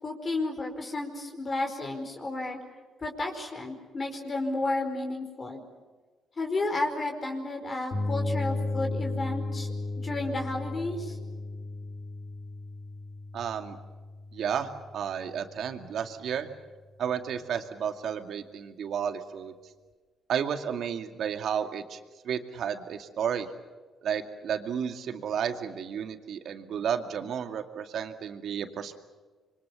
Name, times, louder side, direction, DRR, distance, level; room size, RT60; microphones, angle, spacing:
voice 1, 0.0-2.6 3.0-5.6 6.4-9.7 10.0-11.2, left 2 dB, 35° left, 3 dB, 4.9 m, -32 dB
sound 1, 7.9-15.6, left 2 dB, 50° left, 4.7 m, -35 dB
voice 2, 13.3-13.8 14.3-16.5 17.0-19.5 20.3-22.0 22.2-23.5 24.0-29.0, right 8 dB, 70° right, 7 dB, 2.2 m, -32 dB
27.0 x 24.0 x 7.1 m, 1.4 s
cardioid pair, 90°, 0 cm